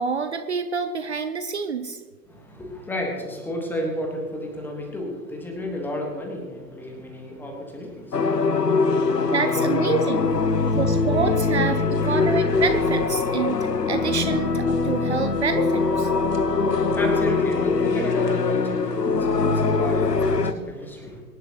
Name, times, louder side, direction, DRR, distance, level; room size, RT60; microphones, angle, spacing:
voice 1, 0.0-2.0 9.3-10.3 10.8-16.1, right 5 dB, 40° right, 8 dB, 0.8 m, -27 dB
voice 2, 2.3-9.3 10.6-10.8 12.0-12.4 16.5-21.2, left 1 dB, 5° left, 2 dB, 1.4 m, -33 dB
sound 1, 8.1-20.5, left 4 dB, 70° left, 1.1 m, -22 dB
24.5 x 11.0 x 3.0 m, 1.4 s
figure-of-eight pair, 130°, 50 cm